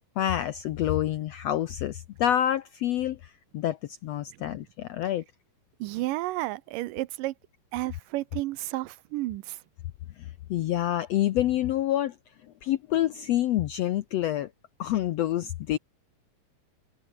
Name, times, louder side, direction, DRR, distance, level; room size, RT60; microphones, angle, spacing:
voice 1, 0.2-5.2 10.2-12.1 12.6-14.5 14.8-15.8, left 12 dB, 75° left, 1.5 m, -27 dB
voice 2, 5.8-7.3 7.7-9.6, right 18 dB, 80° right, 2.3 m, -32 dB
omnidirectional pair, 3.9 m